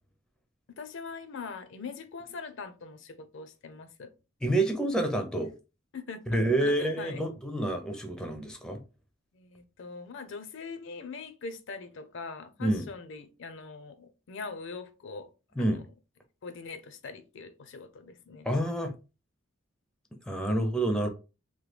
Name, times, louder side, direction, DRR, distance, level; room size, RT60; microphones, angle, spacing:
voice 1, 0.8-4.1 5.9-7.2 9.3-15.3 15.6-15.8 16.4-18.5, left 4 dB, 65° left, 0.5 m, -42 dB
voice 2, 4.4-5.5 6.3-8.8 12.6-12.9 15.6-15.8 18.4-18.9 20.3-21.1, right 1 dB, 5° left, 0.4 m, -28 dB
3.0 x 2.2 x 3.2 m
head